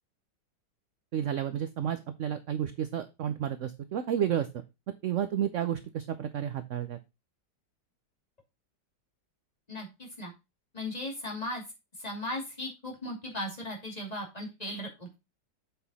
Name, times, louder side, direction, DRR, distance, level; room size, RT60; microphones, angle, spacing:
voice 1, 1.1-4.5 5.0-7.0, right 9 dB, 65° right, 10 dB, 0.8 m, -31 dB
voice 2, 9.7-10.3 10.7-11.6 12.0-15.2, left 1 dB, 20° left, 0 dB, 2.5 m, -37 dB
7.9 x 5.8 x 4.1 m, 0.25 s
omnidirectional pair, 1.9 m